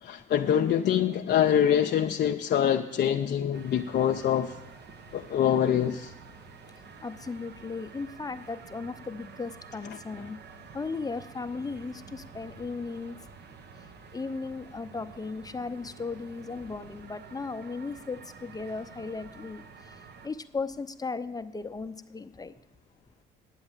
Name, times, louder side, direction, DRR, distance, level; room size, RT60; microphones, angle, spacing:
voice 1, 0.0-4.5 5.1-6.1, left 9 dB, 55° left, 0.6 m, -25 dB
sound 1, 3.5-20.3, right 5 dB, 55° right, 1.1 m, -49 dB
voice 2, 7.0-10.4 10.7-13.2 14.1-19.6 20.2-22.5, left 4 dB, 20° left, 0.7 m, -36 dB
9.8 x 7.9 x 7.4 m
supercardioid pair, 65°, 21 cm